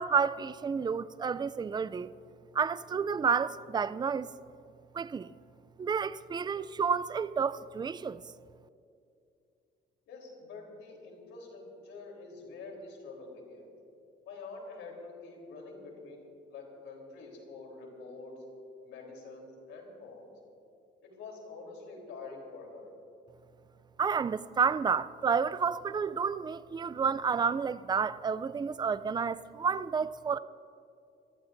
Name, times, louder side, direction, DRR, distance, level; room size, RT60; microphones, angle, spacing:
voice 1, 0.0-2.1 2.5-4.3 4.9-5.3 5.8-8.2 24.0-30.4, right 6 dB, 20° right, 0.4 m, -30 dB
voice 2, 10.1-13.7 14.3-18.4 18.8-20.3 21.0-22.9, left 3 dB, 85° left, 3.7 m, -46 dB
26.5 x 14.5 x 2.7 m
cardioid pair, 90°, 20 cm